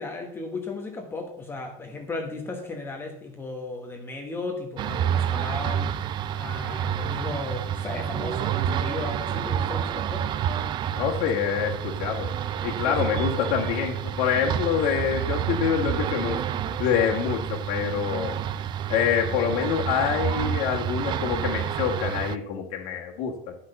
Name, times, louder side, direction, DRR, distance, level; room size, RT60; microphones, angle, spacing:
voice 1, 0.0-10.3 12.8-13.1, left 3 dB, 15° left, 2 dB, 1.2 m, -35 dB
sound 1, 4.8-22.4, right 9 dB, 30° right, 0.4 m, -29 dB
voice 2, 11.0-12.3 12.6-16.4 16.8-18.4 18.9-23.6, left 8 dB, 55° left, -1 dB, 1.7 m, -26 dB
10.5 x 5.8 x 6.6 m, 0.73 s
supercardioid pair, 155°, 16 cm